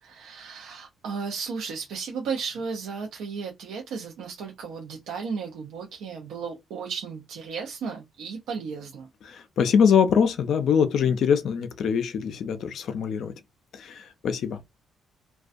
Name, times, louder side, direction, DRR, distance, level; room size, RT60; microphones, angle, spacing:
voice 1, 0.0-9.1, right 5 dB, 85° right, 0.4 m, -34 dB
voice 2, 9.2-13.3 13.7-14.6, left 7 dB, 70° left, 0.3 m, -23 dB
2.4 x 2.1 x 2.4 m
cardioid pair, 90°, 0 cm